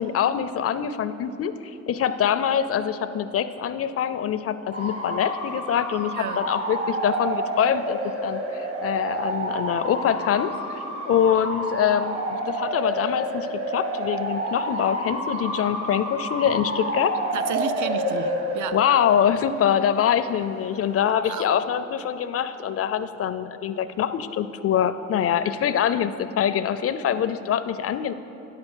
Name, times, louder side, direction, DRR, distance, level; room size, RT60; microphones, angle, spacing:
voice 1, 0.0-1.5 1.9-10.5 11.1-12.2 12.5-17.2 18.7-28.1, left 9 dB, 50° left, 12 dB, 0.4 m, -24 dB
Bark / Motor vehicle (road) / Siren, 4.7-21.0, right 1 dB, 50° right, 1.7 m, -30 dB
voice 2, 17.3-18.8 21.2-21.6, right 9 dB, 75° right, 12 dB, 0.5 m, -32 dB
9.4 x 6.7 x 6.2 m, 2.9 s
cardioid pair, 90°, 30 cm